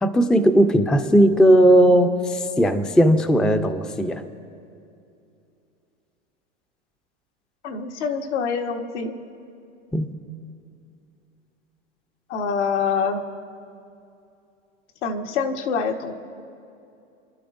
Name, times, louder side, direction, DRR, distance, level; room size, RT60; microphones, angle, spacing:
voice 1, 0.0-4.3 9.9-10.1, right 1 dB, ahead, 8 dB, 0.5 m, -17 dB
voice 2, 7.6-9.1 12.3-13.2 15.0-16.1, left 5 dB, 70° left, 4 dB, 1.5 m, -25 dB
30.0 x 12.0 x 2.6 m, 2.6 s
hypercardioid pair, 110°, 36 cm